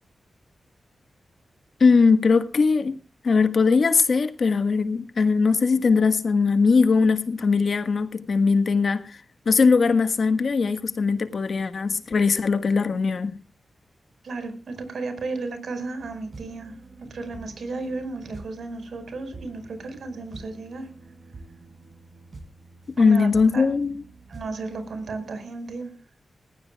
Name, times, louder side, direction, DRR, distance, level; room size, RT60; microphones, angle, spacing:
voice 1, 1.8-3.0 3.2-9.2 9.4-13.3 23.0-24.0, left 4 dB, 65° left, 1.5 m, -20 dB
voice 2, 14.2-20.9 23.0-23.3 23.5-23.7 24.3-25.9, right 3 dB, 75° right, 5.0 m, -34 dB
sound 1, 16.0-25.2, right 3 dB, 55° right, 5.1 m, -47 dB
20.5 x 16.0 x 2.3 m
cardioid pair, 55°, 0 cm